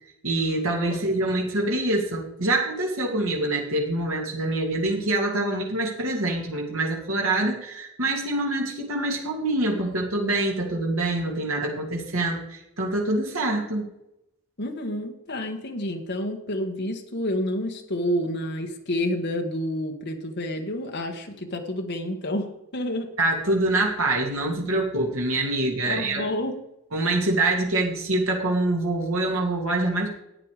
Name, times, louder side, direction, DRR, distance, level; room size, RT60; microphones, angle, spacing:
voice 1, 0.2-13.9 23.2-26.3 26.9-30.1, right 2 dB, 70° right, -1 dB, 2.5 m, -25 dB
voice 2, 14.6-22.5 22.7-23.1 25.8-26.5, left 1 dB, 50° left, 3 dB, 1.5 m, -29 dB
12.5 x 8.9 x 4.9 m, 0.85 s
head